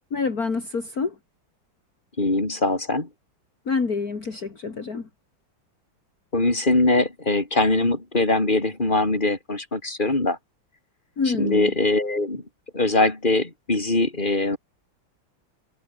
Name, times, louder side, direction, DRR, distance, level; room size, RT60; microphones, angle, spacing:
voice 1, 0.1-1.1 3.7-5.1 11.2-11.7, left 4 dB, 45° left, 3.1 m, -27 dB
voice 2, 2.2-3.1 6.3-10.4 11.2-12.4 12.7-14.6, left 2 dB, 25° left, 4.6 m, -22 dB
omnidirectional pair, 2.2 m